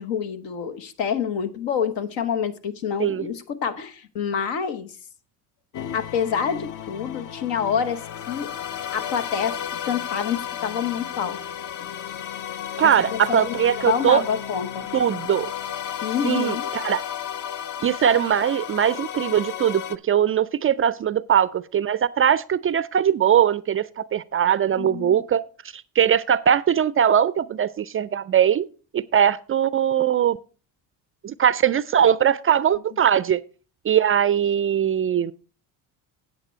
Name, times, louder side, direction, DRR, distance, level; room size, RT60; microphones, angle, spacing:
voice 1, 0.0-4.9 5.9-8.5 8.9-11.4 12.8-13.5 13.8-14.9 16.0-16.7 24.8-25.2, left 7 dB, 70° left, 1.2 m, -27 dB
sound 1, 5.7-20.0, left 10 dB, 40° left, 0.7 m, -33 dB
voice 2, 12.8-14.2 14.9-15.5 16.2-17.0 17.8-25.4 25.7-28.7 28.9-30.4 31.2-33.4 33.8-35.3, right 9 dB, 30° right, 0.4 m, -21 dB
9.0 x 8.3 x 4.4 m
hypercardioid pair, 65°, 46 cm